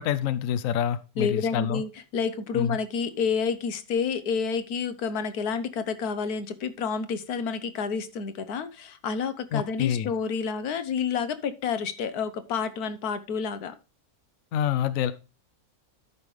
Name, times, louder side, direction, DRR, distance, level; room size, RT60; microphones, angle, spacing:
voice 1, 0.0-1.8 2.5-2.8 9.5-10.1 14.5-15.1, left 9 dB, 70° left, 1.0 m, -27 dB
voice 2, 1.2-13.7, left 6 dB, 90° left, 1.4 m, -29 dB
12.5 x 5.4 x 3.2 m
omnidirectional pair, 1.6 m